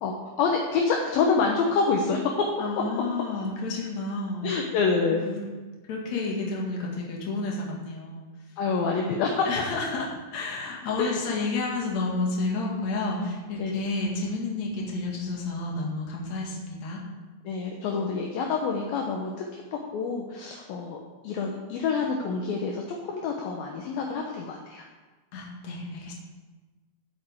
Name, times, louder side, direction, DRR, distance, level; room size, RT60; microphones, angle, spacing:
voice 1, 0.0-2.3 4.4-5.3 8.6-9.5 11.0-11.2 13.6-13.7 17.5-19.6 19.9-21.0 21.2-24.8, left 5 dB, 75° left, 0 dB, 2.3 m, -27 dB
voice 2, 2.6-4.5 5.2-5.4 5.9-8.3 9.4-17.0 25.3-26.1, left 3 dB, 50° left, -2 dB, 2.6 m, -30 dB
17.0 x 8.6 x 3.7 m, 1.3 s
omnidirectional pair, 5.3 m